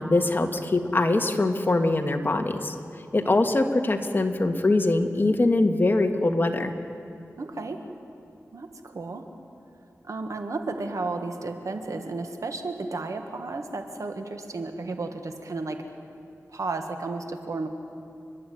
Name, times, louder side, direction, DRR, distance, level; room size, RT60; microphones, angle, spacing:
voice 1, 0.0-2.8 3.1-6.7, left 2 dB, 35° left, 4 dB, 1.8 m, -23 dB
voice 2, 7.4-7.8 8.5-9.3 10.0-15.8 16.5-17.7, right 3 dB, 70° right, 6 dB, 1.8 m, -33 dB
30.0 x 12.0 x 9.5 m, 2.6 s
wide cardioid pair, 80°, 6 cm